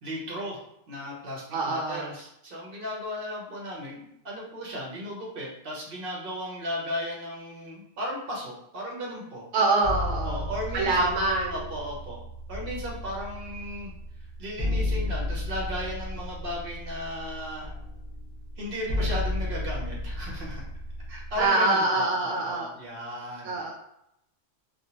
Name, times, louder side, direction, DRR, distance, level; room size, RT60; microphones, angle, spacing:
voice 1, 0.0-9.5 10.2-12.2 12.5-13.9 14.4-17.7 18.6-20.6 21.1-23.6, equal, 50° right, -2 dB, 1.1 m, -35 dB
voice 2, 1.5-2.1 9.5-11.6 21.4-22.7 23.4-23.7, right 2 dB, 80° right, -1 dB, 0.9 m, -25 dB
sound 1, 9.8-21.5, left 1 dB, 10° left, 1.0 m, -33 dB
3.4 x 2.4 x 2.9 m, 0.78 s
omnidirectional pair, 1.2 m